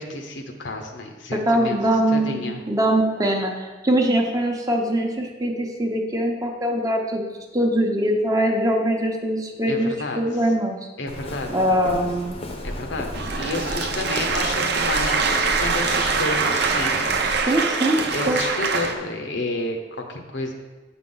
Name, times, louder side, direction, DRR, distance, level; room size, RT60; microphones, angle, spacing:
voice 1, 0.0-1.8 2.1-2.6 9.6-10.2 11.0-12.0 12.6-17.0 18.1-20.5, left 2 dB, 75° left, 3 dB, 1.0 m, -30 dB
voice 2, 1.3-7.2 7.5-9.9 10.2-10.8 11.5-12.4 17.5-18.4, right 1 dB, 20° right, 1 dB, 0.9 m, -22 dB
Walk footsteps, 11.1-17.4, left 1 dB, 35° left, 0.8 m, -34 dB
sound 1, 13.1-18.9, right 4 dB, 65° right, 0.7 m, -23 dB
8.5 x 5.9 x 3.9 m, 1.2 s
head